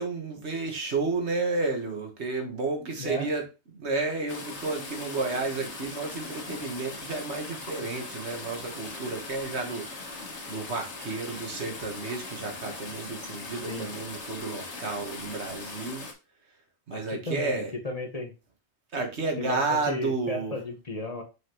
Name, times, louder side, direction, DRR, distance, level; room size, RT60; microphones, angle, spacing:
voice 1, 0.0-3.5 3.7-16.1 16.9-17.7 18.9-20.6, right 3 dB, 75° right, 3 dB, 1.7 m, -31 dB
sound 1, 4.3-16.1, left 3 dB, 85° left, 1.7 m, -40 dB
voice 2, 16.9-18.3 19.4-21.2, left 2 dB, 35° left, 4 dB, 1.1 m, -34 dB
6.4 x 5.3 x 3.0 m, 0.29 s
omnidirectional pair, 1.1 m